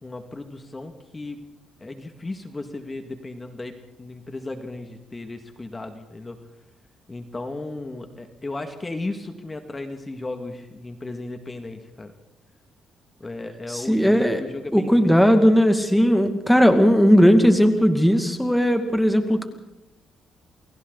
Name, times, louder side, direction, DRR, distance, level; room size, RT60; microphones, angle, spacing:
voice 1, 0.0-1.4 1.8-6.4 7.1-12.1 13.2-15.2, left 2 dB, 20° left, 6 dB, 2.3 m, -35 dB
voice 2, 13.7-14.4 14.7-19.4, equal, ahead, 6 dB, 2.4 m, -17 dB
29.5 x 21.5 x 4.2 m, 0.89 s
cardioid pair, 90°, 0 cm